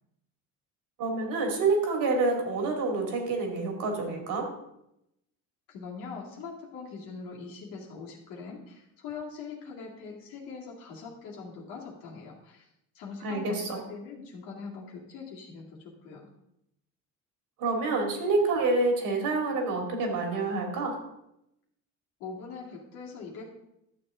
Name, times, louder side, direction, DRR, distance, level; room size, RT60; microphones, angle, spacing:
voice 1, 1.0-4.5 13.2-13.8 17.6-21.0, right 3 dB, 75° right, 2 dB, 2.6 m, -27 dB
voice 2, 5.7-12.7 12.9-16.3 22.2-23.5, left 4 dB, 90° left, -2 dB, 2.3 m, -42 dB
11.5 x 7.1 x 3.7 m, 0.83 s
cardioid pair, 100°, 33 cm